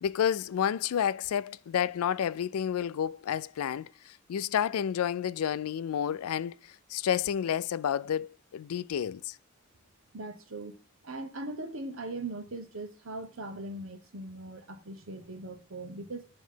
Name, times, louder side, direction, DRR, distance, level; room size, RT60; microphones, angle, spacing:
voice 1, 0.0-6.6 6.9-9.4, left 9 dB, 90° left, 0.3 m, -30 dB
voice 2, 10.1-10.8 11.0-16.3, right 2 dB, 70° right, 1.0 m, -40 dB
7.3 x 3.1 x 5.5 m
head